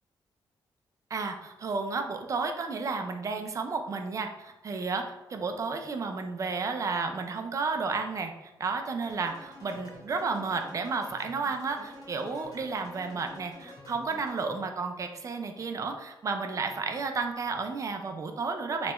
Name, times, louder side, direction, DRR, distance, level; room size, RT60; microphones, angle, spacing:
voice 1, 1.1-8.3 8.6-18.9, right 4 dB, 40° right, 5 dB, 0.3 m, -32 dB
sound 1, 9.0-14.7, left 1 dB, 50° left, 0.9 m, -49 dB
3.0 x 2.2 x 2.9 m, 0.98 s
cardioid pair, 120°, 9 cm